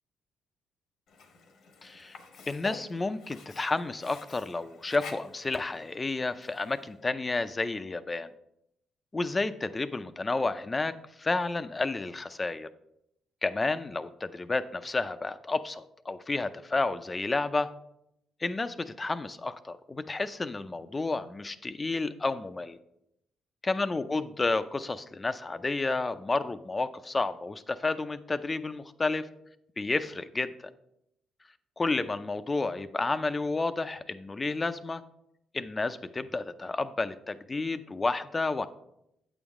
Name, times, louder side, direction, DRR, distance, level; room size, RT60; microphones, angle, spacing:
Sink (filling or washing), 1.1-7.0, left 4 dB, 75° left, 1.1 m, -49 dB
voice 1, 1.8-2.2 2.5-8.3 9.1-10.9 11.2-12.7 13.4-17.7 18.4-22.8 23.7-29.3 29.8-30.5 31.8-35.0 35.5-38.7, left 3 dB, 25° left, 12 dB, 0.5 m, -31 dB
8.7 x 7.1 x 3.6 m, 0.79 s
cardioid pair, 90°, 0 cm